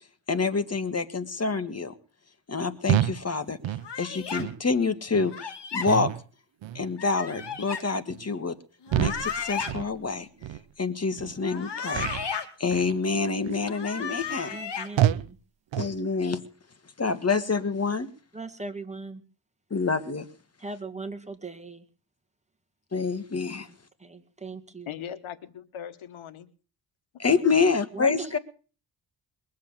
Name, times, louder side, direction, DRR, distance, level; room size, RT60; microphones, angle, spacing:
voice 1, 0.3-1.9 2.5-3.6 4.0-6.1 6.8-8.6 9.0-10.3 10.8-12.1 12.6-14.5 15.7-16.4 17.0-18.1 19.7-20.3 22.9-23.7 27.2-28.4, left 4 dB, 30° left, 11 dB, 1.8 m, -27 dB
sound 1, 2.9-3.2 3.6-3.9 4.4-4.6 5.1-5.3 5.9-6.2 6.6-6.9 7.4-7.6 8.1-8.3 8.9-9.3 9.7-10.0 10.4-10.6 11.2-11.3 11.9-12.3 12.7-13.0 13.5-13.7 14.2-14.3 15.0-15.3 15.7-16.0, right 12 dB, 65° right, 0.7 m, -28 dB
sound 2, 3.8-4.4 5.3-5.9 7.0-7.8 8.8-9.7 11.4-12.5 13.6-14.9, left 6 dB, 60° left, 2.5 m, -34 dB
voice 2, 14.5-15.4 18.3-19.2 20.6-21.8 24.0-24.9 27.3-27.4 27.9-28.4, right 3 dB, 15° right, 6 dB, 2.1 m, -38 dB
voice 3, 24.9-26.5, left 9 dB, 80° left, 13 dB, 1.4 m, -39 dB
22.0 x 7.6 x 7.3 m, 0.40 s
cardioid pair, 80°, 47 cm